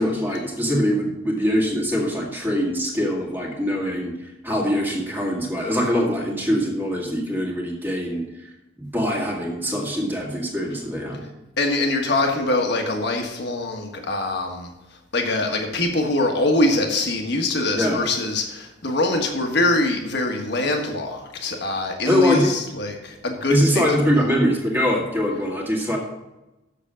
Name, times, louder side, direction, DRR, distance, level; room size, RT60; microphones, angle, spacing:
voice 1, 0.0-8.5 8.8-11.3 17.8-18.0 22.1-22.5 23.5-26.0, equal, 10° right, -1 dB, 2.0 m, -23 dB
voice 2, 11.6-14.7 15.1-23.8 24.1-24.2, left 2 dB, 60° left, 3 dB, 1.5 m, -23 dB
7.0 x 7.0 x 6.3 m, 0.99 s
head